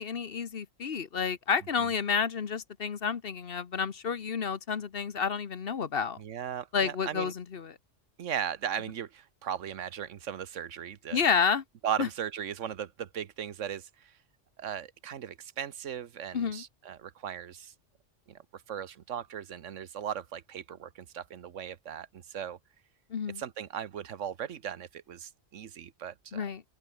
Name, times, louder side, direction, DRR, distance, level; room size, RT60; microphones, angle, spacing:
voice 1, 0.0-6.2 6.7-7.7 11.1-11.6 12.0-12.1 16.3-16.6 23.1-23.4 26.3-26.6, left 6 dB, 50° left, 1.2 m, -30 dB
voice 2, 6.2-7.3 8.2-11.2 11.8-14.1 14.6-17.7 18.3-22.6 23.4-26.4, right 9 dB, 80° right, 1.3 m, -37 dB
open air
omnidirectional pair, 1.3 m